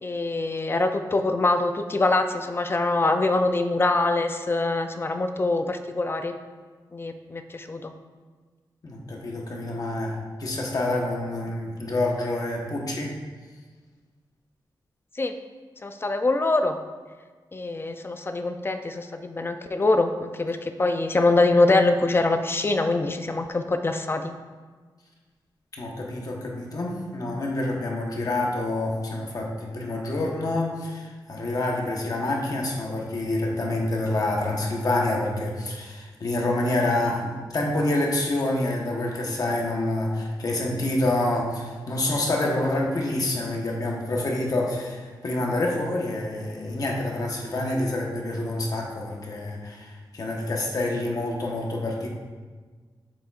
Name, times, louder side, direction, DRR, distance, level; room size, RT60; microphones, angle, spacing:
voice 1, 0.0-6.3 6.9-7.9 15.2-15.3 15.8-16.8 17.5-24.3, left 2 dB, 30° left, 7 dB, 0.4 m, -24 dB
voice 2, 8.8-13.1 25.8-52.1, left 2 dB, 50° left, -1 dB, 1.1 m, -27 dB
7.3 x 7.0 x 2.4 m, 1.4 s
wide cardioid pair, 140°, 8 cm